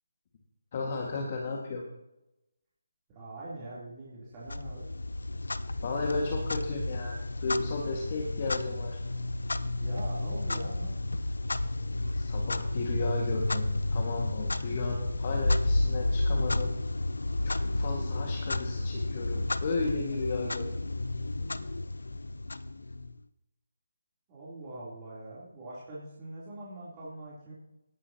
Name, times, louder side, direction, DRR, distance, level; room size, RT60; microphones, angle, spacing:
voice 1, 0.7-1.8 5.8-9.0 12.1-16.7 17.4-20.8, left 3 dB, 40° left, 0 dB, 1.9 m, -34 dB
voice 2, 3.1-4.9 9.8-10.9 24.3-27.5, right 1 dB, 25° right, -9 dB, 3.5 m, -43 dB
Clock, 4.5-23.2, left 2 dB, 75° left, 0.6 m, -31 dB
18.0 x 10.5 x 3.0 m, 0.90 s
figure-of-eight pair, 150°, 0 cm